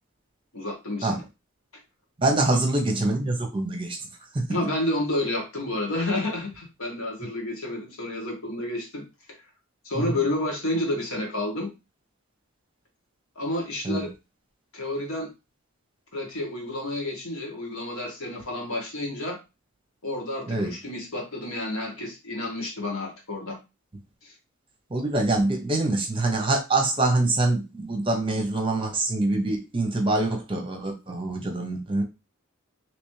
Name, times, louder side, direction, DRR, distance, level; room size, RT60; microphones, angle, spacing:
voice 1, 0.5-1.2 2.5-2.6 4.5-9.0 9.8-11.7 13.3-14.1 14.7-15.3 16.1-19.4 20.0-23.6 24.2-24.3, left 1 dB, 75° left, 0 dB, 1.5 m, -30 dB
voice 2, 2.2-4.0 4.3-4.6 10.1-10.2 13.8-14.1 20.5-20.7 24.9-32.0, right 2 dB, 25° right, 3 dB, 0.7 m, -25 dB
3.3 x 3.0 x 3.1 m, 0.26 s
head